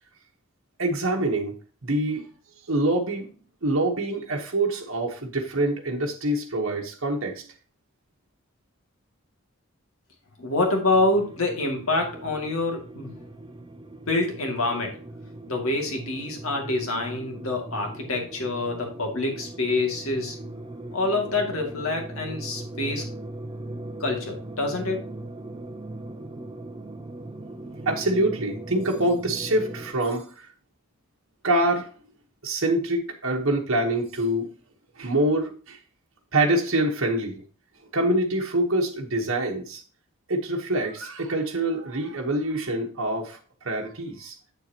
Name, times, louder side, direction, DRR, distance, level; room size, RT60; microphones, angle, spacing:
voice 1, 0.8-2.3 2.7-3.3 3.6-7.5 27.8-30.5 31.4-31.9 32.4-34.5 35.0-35.8 36.3-37.4 37.9-39.8 40.3-44.3, right 1 dB, 70° right, 1.2 m, -25 dB
voice 2, 10.4-13.2 14.1-15.0 15.5-20.3 20.9-23.0 24.0-25.0, left 2 dB, 80° left, 2.3 m, -26 dB
sound 1, 10.9-29.9, right 2 dB, 20° right, 0.6 m, -39 dB
8.0 x 7.1 x 2.9 m
head